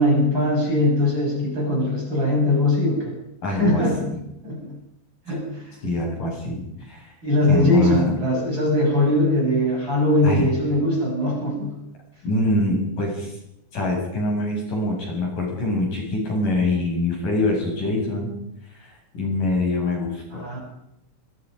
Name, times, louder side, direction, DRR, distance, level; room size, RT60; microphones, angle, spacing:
voice 1, 0.0-3.1 3.6-4.1 4.4-4.7 5.3-5.4 7.2-11.7 20.3-20.6, left 1 dB, 20° right, -1 dB, 7.4 m, -21 dB
voice 2, 3.4-4.2 5.8-7.1 7.5-8.1 10.2-10.5 12.2-13.4 13.7-18.3 18.7-20.5, left 2 dB, 40° left, -1 dB, 8.9 m, -24 dB
26.5 x 24.0 x 5.4 m, 0.82 s
omnidirectional pair, 5.8 m